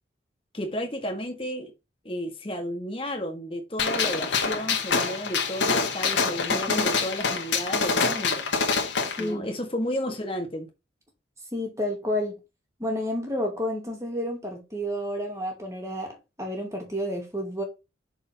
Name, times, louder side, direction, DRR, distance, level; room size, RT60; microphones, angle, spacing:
voice 1, 0.5-1.7 2.1-8.5 9.2-10.7, equal, 30° left, 1.7 m, -32 dB
Gunshot gunfire, 3.8-9.2, left 5 dB, 70° left, 1.9 m, -26 dB
voice 2, 6.5-6.9 9.2-9.5 11.5-12.4 12.8-17.6, equal, 15° right, 2.5 m, -30 dB
6.6 x 4.6 x 4.4 m
head